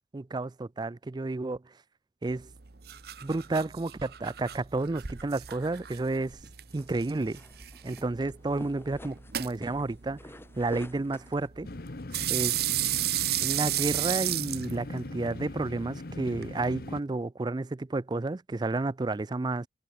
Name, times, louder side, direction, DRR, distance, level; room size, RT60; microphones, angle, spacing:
voice 1, 0.1-1.6 2.2-2.5 3.2-6.4 6.7-7.4 7.8-10.2 10.6-11.7 12.3-12.6 13.4-19.7, right 2 dB, 25° right, 0.4 m, -31 dB
sound 1, 2.3-16.5, right 14 dB, 60° right, 1.0 m, -35 dB
sound 2, 5.4-11.5, equal, 15° left, 6.2 m, -49 dB
sound 3, 11.6-17.0, left 2 dB, 55° left, 1.0 m, -40 dB
head